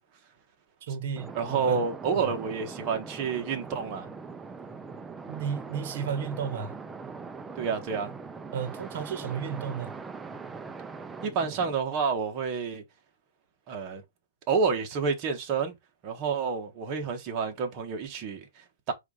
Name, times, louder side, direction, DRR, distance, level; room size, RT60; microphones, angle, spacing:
voice 1, 0.8-1.8 2.1-2.2 5.3-6.7 8.5-9.9, right 7 dB, 45° right, 1.4 m, -33 dB
sound 1, 1.2-11.7, right 4 dB, 10° right, 0.4 m, -41 dB
voice 2, 1.3-4.1 7.6-8.1 11.2-12.8 13.7-14.0 14.5-15.7 16.0-18.9, right 5 dB, 25° right, 1.6 m, -29 dB
4.8 x 4.2 x 5.0 m
hypercardioid pair, 170°, 0 cm